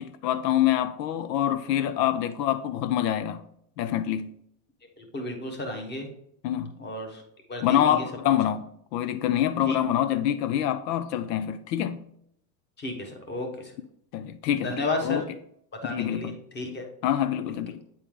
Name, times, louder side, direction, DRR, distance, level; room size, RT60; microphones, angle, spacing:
voice 1, 0.0-3.4 3.8-4.3 6.4-6.7 7.6-8.7 8.9-12.0 14.1-15.3 15.9-16.4 17.0-17.8, left 11 dB, 90° left, 0.6 m, -26 dB
voice 2, 5.0-6.1 6.8-7.2 7.5-8.0 9.7-9.8 12.8-13.7 14.6-15.2 15.8-16.9, left 2 dB, 20° left, 1.3 m, -32 dB
8.7 x 4.2 x 3.7 m
supercardioid pair, 145°, 48 cm